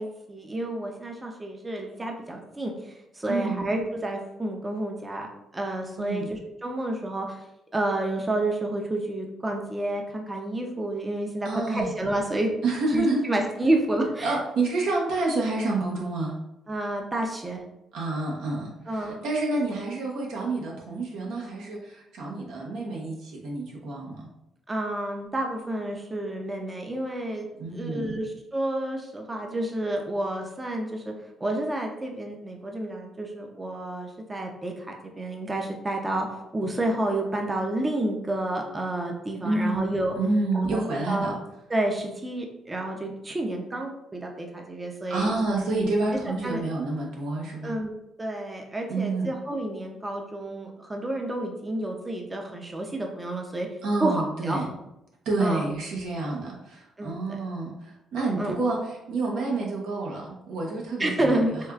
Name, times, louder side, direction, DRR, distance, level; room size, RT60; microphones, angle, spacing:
voice 1, 0.0-7.4 7.7-12.5 12.9-14.4 16.7-17.6 18.9-19.2 24.7-31.1 31.4-40.2 40.5-40.8 41.1-41.4 41.7-45.6 46.3-46.6 47.6-47.9 48.2-53.7 54.0-54.6 55.4-55.7 57.0-57.4 58.4-58.6 61.0-61.5, right 1 dB, 20° right, 2 dB, 0.5 m, -30 dB
voice 2, 3.3-3.6 6.0-6.3 11.4-11.9 12.6-13.2 14.2-16.3 17.9-24.3 27.6-28.2 39.4-39.8 40.2-41.3 45.1-47.7 48.9-49.3 53.8-54.7 55.3-58.8 59.1-61.7, right 2 dB, 80° right, -2 dB, 0.9 m, -28 dB
4.4 x 2.3 x 2.3 m, 0.87 s
cardioid pair, 90°, 0 cm